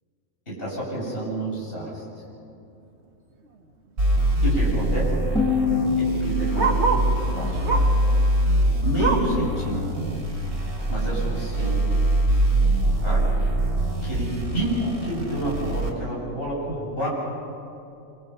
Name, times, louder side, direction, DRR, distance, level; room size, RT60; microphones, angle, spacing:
voice 1, 0.5-2.0 4.4-5.0 6.0-7.6 8.8-9.8 10.9-11.9 13.0-13.2 14.0-17.1, right 1 dB, 40° left, -6 dB, 8.2 m, -29 dB
Bark, 3.4-3.7 4.0-4.1 4.3-7.2 7.6-8.0 8.4-9.4 9.9-10.0 10.4-10.5 11.1-11.2, right 4 dB, 50° right, 1.7 m, -27 dB
sound 1, 4.0-15.9, right 1 dB, 85° right, 4.5 m, -23 dB
sound 2, 5.3-8.3, left 4 dB, 5° left, 4.0 m, -27 dB
27.5 x 26.0 x 5.8 m, 2.7 s
omnidirectional pair, 1.5 m